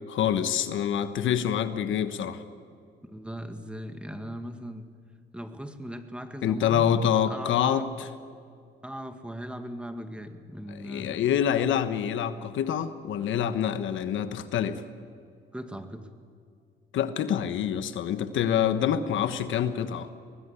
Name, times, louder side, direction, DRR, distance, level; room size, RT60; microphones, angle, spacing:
voice 1, 0.1-2.4 6.4-8.1 10.7-14.8 16.9-20.1, left 9 dB, 75° left, 11 dB, 1.2 m, -26 dB
voice 2, 3.0-4.9 5.3-7.0 7.3-7.9 8.8-11.2 15.5-16.1, equal, 5° right, 7 dB, 2.1 m, -38 dB
22.5 x 20.0 x 8.4 m, 2.3 s
cardioid pair, 90°, 20 cm